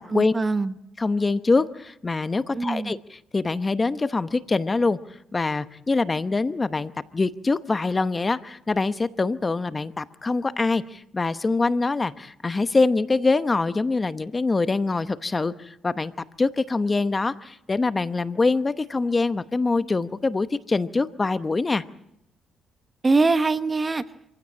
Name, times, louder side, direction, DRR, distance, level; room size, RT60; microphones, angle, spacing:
voice 1, 0.1-0.8 2.5-3.0 23.0-24.0, right 3 dB, 25° right, 12 dB, 1.0 m, -23 dB
voice 2, 1.0-5.0 5.3-16.1 16.4-21.8, left 3 dB, 25° left, 12 dB, 0.9 m, -24 dB
26.0 x 16.0 x 8.7 m, 0.81 s
cardioid pair, 90°, 0 cm